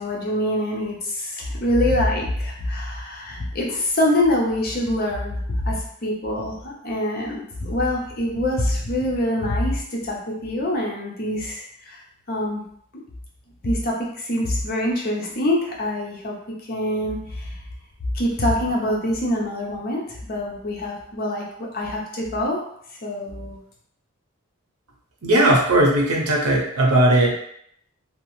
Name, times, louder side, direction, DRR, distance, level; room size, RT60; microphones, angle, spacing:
voice 1, 0.0-12.0 12.3-12.6 12.9-13.0 13.6-16.4 16.6-17.6 18.1-22.6 23.0-23.6, left 1 dB, 45° left, -2 dB, 0.6 m, -25 dB
voice 2, 25.2-27.3, right 1 dB, 85° right, -2 dB, 0.8 m, -17 dB
2.8 x 2.0 x 3.0 m, 0.68 s
head